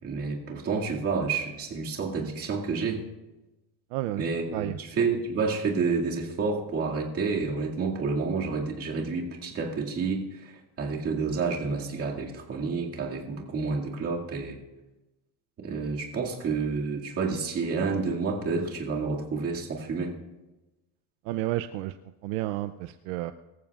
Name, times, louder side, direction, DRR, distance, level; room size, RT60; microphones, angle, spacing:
voice 1, 0.0-3.0 4.2-14.6 15.6-20.1, right 4 dB, 30° right, -1 dB, 2.2 m, -29 dB
voice 2, 3.9-4.2 4.5-4.8 21.3-21.9 22.2-23.3, right 15 dB, 70° right, 11 dB, 0.6 m, -31 dB
23.5 x 14.5 x 2.4 m, 1.1 s
cardioid pair, 165°, 47 cm